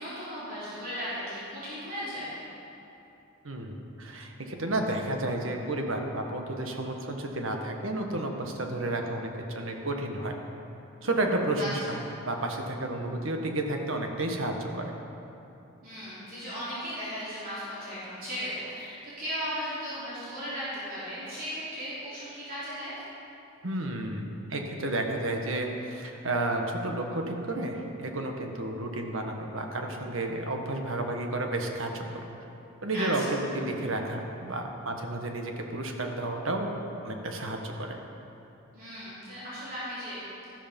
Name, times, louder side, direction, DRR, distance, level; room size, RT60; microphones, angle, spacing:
voice 1, 0.0-2.4 11.6-12.0 15.8-22.9 32.9-33.3 38.7-40.2, equal, 45° right, -11 dB, 4.0 m, -36 dB
voice 2, 3.4-10.3 11.0-12.0 12.2-14.9 23.6-24.2 24.5-32.3 32.8-36.7 37.0-38.0, right 2 dB, 70° right, 3 dB, 1.5 m, -31 dB
13.5 x 13.0 x 5.4 m, 2.9 s
head